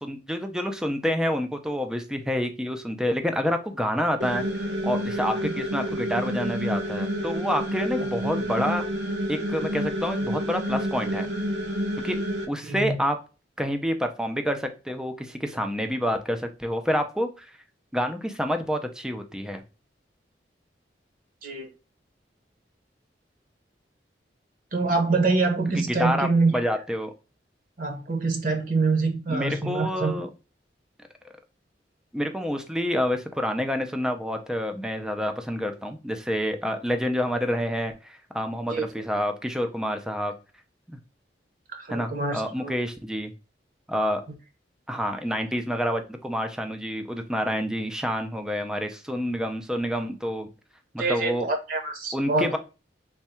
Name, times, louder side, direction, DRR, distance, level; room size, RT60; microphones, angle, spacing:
voice 1, 0.0-4.4 4.8-8.8 9.3-11.3 12.0-12.2 12.5-13.2 13.6-17.5 17.9-19.6 25.7-27.1 29.3-30.3 32.1-40.3 40.9-41.0 41.9-43.3 43.9-44.2 44.9-50.5 50.9-51.5 52.1-52.6, equal, 5° right, 0.4 m, -28 dB
sound 1, 4.2-12.4, equal, 85° right, 0.9 m, -29 dB
voice 2, 12.6-13.0 21.4-21.7 24.7-26.5 27.8-30.1 38.7-39.0 41.7-42.7 51.0-52.6, right 3 dB, 50° right, 0.9 m, -25 dB
3.5 x 2.2 x 4.2 m
head